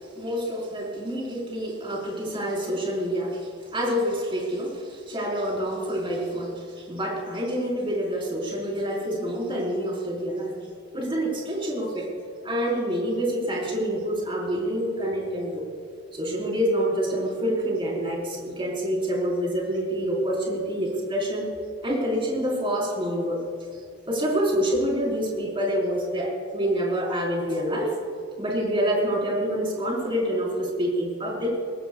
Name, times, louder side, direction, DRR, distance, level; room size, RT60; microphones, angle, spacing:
voice 1, 0.2-10.5 10.9-12.1 12.4-15.7 16.1-21.5 21.8-23.4 24.1-28.0 28.4-31.6, equal, 25° right, -3 dB, 4.5 m, -27 dB
24.0 x 18.0 x 2.4 m, 2.2 s
head